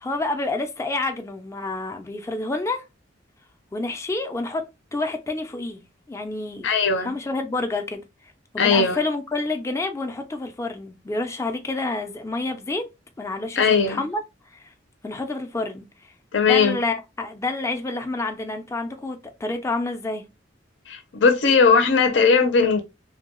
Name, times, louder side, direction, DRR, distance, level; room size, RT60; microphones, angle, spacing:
voice 1, 0.0-2.8 3.7-4.6 4.9-5.8 6.1-6.7 7.0-8.0 8.5-12.9 13.2-14.2 14.5-14.6 15.0-15.9 16.4-20.2, left 2 dB, 15° left, 0.4 m, -28 dB
voice 2, 6.6-7.1 8.6-9.0 13.6-14.0 16.3-16.8 20.9-22.8, left 5 dB, 75° left, 0.6 m, -18 dB
2.8 x 2.2 x 2.9 m
head